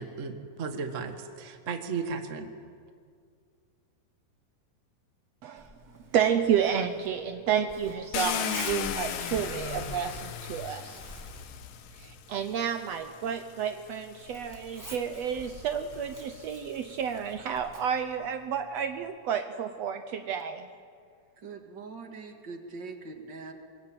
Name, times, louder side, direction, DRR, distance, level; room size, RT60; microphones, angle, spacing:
voice 1, 0.0-2.5, right 5 dB, 55° right, 6 dB, 0.8 m, -35 dB
Zipper (clothing), 5.6-19.1, equal, 5° right, 2.1 m, -47 dB
voice 2, 6.1-11.0 12.0-20.7, right 8 dB, 85° right, 8 dB, 1.4 m, -30 dB
Car, 8.1-12.2 13.2-13.3 13.8-17.1, left 9 dB, 70° left, 2.7 m, -37 dB
voice 3, 21.4-23.5, right 4 dB, 35° right, 5 dB, 2.0 m, -42 dB
24.5 x 22.5 x 8.9 m, 2.1 s
omnidirectional pair, 4.3 m